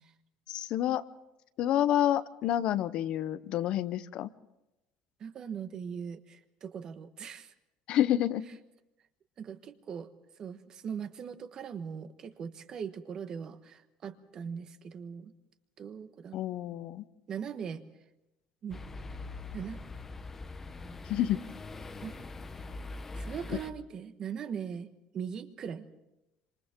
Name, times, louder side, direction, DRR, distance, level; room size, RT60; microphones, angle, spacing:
voice 1, 0.5-1.0 1.6-4.3 7.9-8.5 16.3-17.0 21.1-21.4 23.5-23.6, left 12 dB, 50° left, 14 dB, 0.7 m, -28 dB
voice 2, 5.2-7.5 9.4-10.1 10.4-15.3 15.8-16.4 17.3-17.8 18.6-18.8 19.5-19.8 22.0-22.1 23.2-25.9, right 7 dB, 35° right, 9 dB, 1.3 m, -40 dB
sound 1, 18.7-23.7, left 3 dB, 15° left, 0.9 m, -42 dB
27.0 x 26.5 x 3.7 m, 0.91 s
cardioid pair, 165°, 2 cm